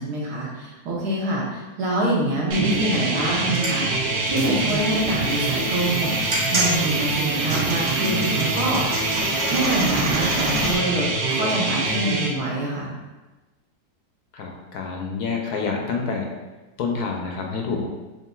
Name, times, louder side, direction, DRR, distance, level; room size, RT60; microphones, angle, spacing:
voice 1, 0.0-9.1 9.5-12.9, right 1 dB, 75° right, -4 dB, 1.5 m, -26 dB
sound 1, 2.5-12.3, right 3 dB, 90° right, 0.5 m, -25 dB
sound 2, 3.3-10.7, right 1 dB, 45° right, 1.0 m, -30 dB
voice 2, 14.3-16.3 16.8-17.9, left 4 dB, 75° left, 1 dB, 1.0 m, -27 dB
6.7 x 2.5 x 2.3 m, 1.2 s
omnidirectional pair, 1.8 m